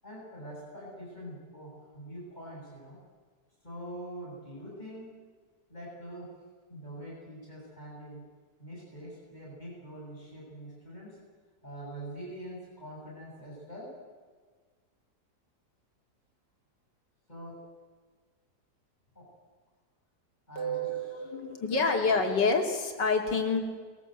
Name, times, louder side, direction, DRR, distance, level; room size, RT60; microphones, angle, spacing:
voice 1, 0.0-3.0 3.6-5.1 5.7-6.3 6.7-8.2 8.6-11.2 11.6-13.9 17.3-17.6 19.1-19.3 20.5-20.9, right 1 dB, 25° left, -4 dB, 8.2 m, -44 dB
voice 2, 20.6-23.6, left 3 dB, 90° left, 3 dB, 3.3 m, -28 dB
23.5 x 22.0 x 8.0 m, 1.5 s
omnidirectional pair, 1.8 m